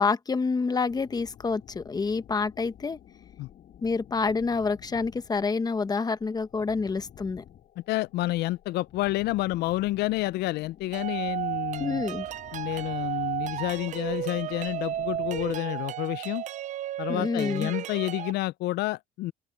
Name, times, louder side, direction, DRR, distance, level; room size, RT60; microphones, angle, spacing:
voice 1, 0.0-3.0 3.8-7.4 11.8-12.3 17.1-17.7, left 4 dB, 25° left, 1.1 m, -28 dB
sound 1, 0.9-15.6, left 10 dB, 55° left, 6.6 m, -52 dB
voice 2, 7.8-12.0 12.5-16.4 17.0-19.3, left 17 dB, 75° left, 0.4 m, -29 dB
sound 2, 10.9-18.3, right 12 dB, 45° right, 0.4 m, -33 dB
open air
cardioid pair, 110°, 17 cm